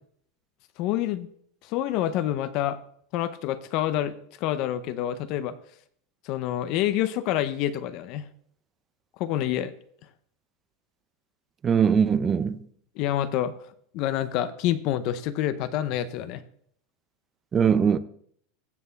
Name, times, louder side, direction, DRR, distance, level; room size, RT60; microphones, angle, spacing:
voice 1, 0.8-1.3 1.6-2.8 3.1-4.1 4.4-5.6 6.2-8.3 9.2-9.7 13.0-13.5 13.9-16.4, left 12 dB, 45° left, 0.6 m, -27 dB
voice 2, 11.6-12.6 17.5-18.0, right 7 dB, 20° right, 0.5 m, -21 dB
15.5 x 6.7 x 3.4 m
supercardioid pair, 155°, 0 cm